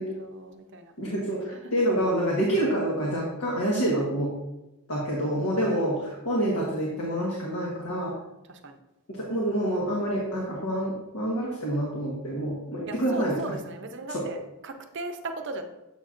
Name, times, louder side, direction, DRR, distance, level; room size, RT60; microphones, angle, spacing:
voice 1, 0.0-0.9 1.5-1.7 8.5-8.8 12.9-15.6, right 3 dB, 55° right, 6 dB, 0.6 m, -38 dB
voice 2, 1.0-4.3 4.9-8.1 9.1-13.4 14.1-14.2, right 1 dB, 75° left, -4 dB, 1.2 m, -27 dB
7.8 x 5.7 x 2.5 m, 0.98 s
head